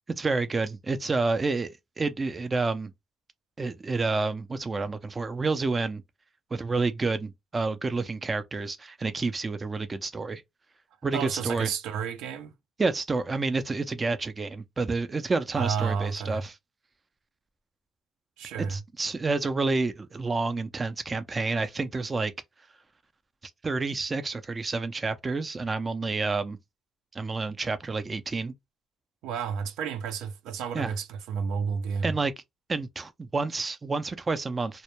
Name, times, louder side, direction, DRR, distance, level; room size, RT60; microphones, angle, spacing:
voice 1, 0.1-2.9 3.6-6.0 6.5-10.4 11.0-11.7 12.8-16.5 18.6-22.3 23.6-26.6 27.1-28.5 30.7-30.9 32.0-32.3 32.7-34.8, right 3 dB, 25° right, 0.4 m, -29 dB
voice 2, 11.1-12.5 15.6-16.5 18.4-18.8 29.2-32.2, right 6 dB, 90° right, 0.4 m, -31 dB
2.1 x 2.1 x 2.9 m
cardioid pair, 110°, 0 cm